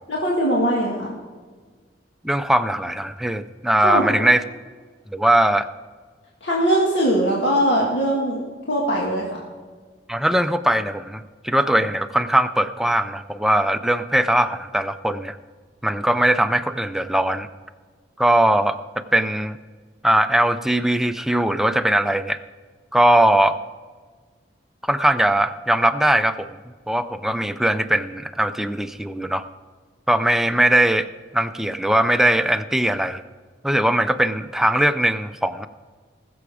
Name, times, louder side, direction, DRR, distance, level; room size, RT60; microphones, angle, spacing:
voice 1, 0.1-1.1 3.8-4.2 6.4-8.4 8.7-9.3, right 1 dB, 75° left, -4 dB, 1.8 m, -21 dB
voice 2, 2.2-4.4 5.1-5.7 10.1-15.4 15.8-17.5 18.2-19.6 20.0-22.4 22.9-23.6 24.9-26.5 26.9-29.4 30.1-31.1 31.3-33.2 33.6-35.7, right 1 dB, ahead, 10 dB, 0.4 m, -20 dB
20.0 x 7.0 x 5.0 m, 1.5 s
head